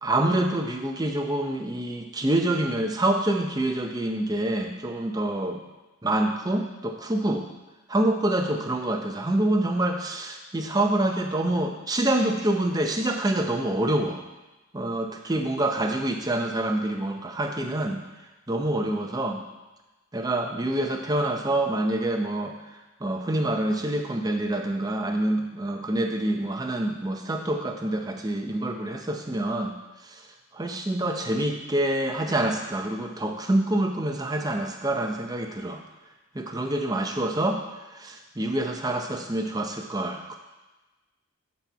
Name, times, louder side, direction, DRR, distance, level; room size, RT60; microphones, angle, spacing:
voice 1, 0.0-5.6 6.0-7.5 7.9-14.2 14.7-18.0 18.5-19.4 20.1-22.5 23.0-29.7 30.1-30.2 30.5-35.8 36.3-37.6 37.9-40.4, right 1 dB, 15° right, 3 dB, 0.6 m, -26 dB
11.5 x 4.2 x 4.6 m, 1.1 s
head